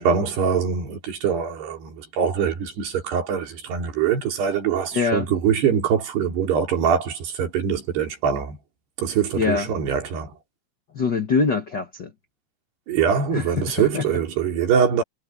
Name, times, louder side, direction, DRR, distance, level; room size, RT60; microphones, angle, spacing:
voice 1, 0.0-8.6 9.0-10.3 12.9-15.0, right 7 dB, 85° right, 5.7 m, -23 dB
voice 2, 4.9-5.3 9.4-9.7 10.9-12.1 13.3-14.1, left 5 dB, 70° left, 1.0 m, -24 dB
omnidirectional pair, 4.6 m